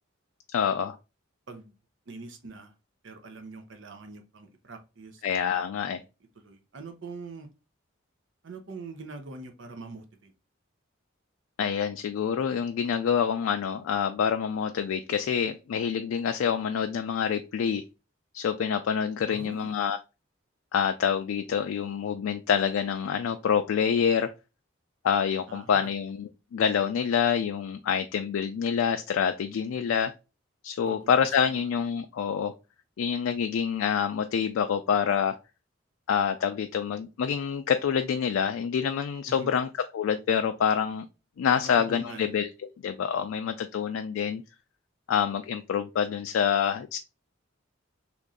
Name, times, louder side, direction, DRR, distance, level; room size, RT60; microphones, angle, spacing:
voice 1, 0.5-1.0 5.2-6.0 11.6-17.8 18.3-20.0 20.7-24.3 25.0-30.1 30.6-32.5 33.0-35.4 36.1-39.7 39.9-41.1 41.4-42.5 42.8-44.4 45.1-47.0, left 7 dB, 90° left, 0.3 m, -27 dB
voice 2, 2.1-2.7 3.0-6.1 6.4-7.5 8.4-10.3 19.3-19.8 25.5-25.9 30.8-31.1 31.4-31.7 39.3-39.5 41.5-42.3 43.9-44.1, right 3 dB, 65° right, 0.6 m, -44 dB
3.0 x 2.6 x 3.6 m
head